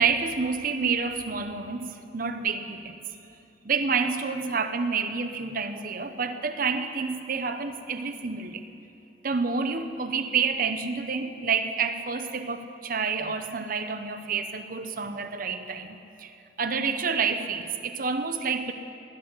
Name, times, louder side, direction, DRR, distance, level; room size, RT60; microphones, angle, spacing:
voice 1, 0.0-3.0 3.6-8.6 9.2-18.7, right 5 dB, 50° right, 9 dB, 0.9 m, -28 dB
18.5 x 6.3 x 9.6 m, 2.8 s
head